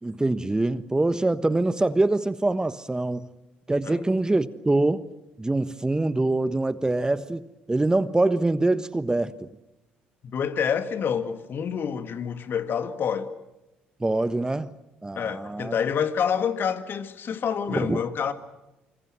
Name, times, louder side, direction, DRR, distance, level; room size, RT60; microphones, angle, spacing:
voice 1, 0.0-3.3 3.7-5.1 5.4-9.3 14.0-14.7 15.0-15.7 17.7-18.0, right 2 dB, 15° right, 1.3 m, -24 dB
voice 2, 10.2-13.3 15.1-18.3, left 7 dB, 50° left, 2.0 m, -27 dB
26.0 x 25.0 x 7.6 m
hypercardioid pair, 50°, 5 cm